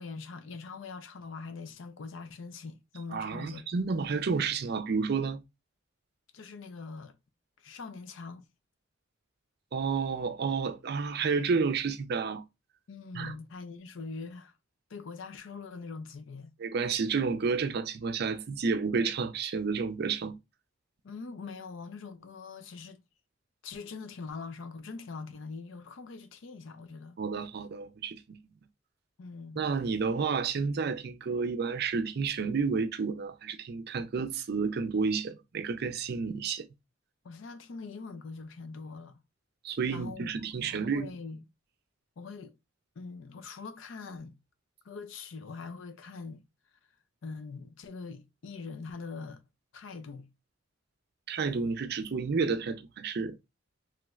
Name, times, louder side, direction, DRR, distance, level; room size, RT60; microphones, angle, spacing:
voice 1, 0.0-3.7 6.3-7.1 7.6-8.5 12.9-14.5 14.9-16.5 21.0-23.0 23.6-27.2 29.2-29.7 37.2-39.2 39.9-40.3 40.6-41.4 42.2-42.5 43.0-44.4 44.8-46.4 47.2-49.4 49.7-50.3, left 4 dB, 70° left, 0.5 m, -43 dB
voice 2, 3.1-5.4 9.7-12.4 13.1-13.3 16.6-20.4 27.2-28.4 29.6-36.7 39.6-41.1 51.3-53.4, right 5 dB, 55° right, 0.4 m, -30 dB
3.1 x 3.1 x 2.3 m
head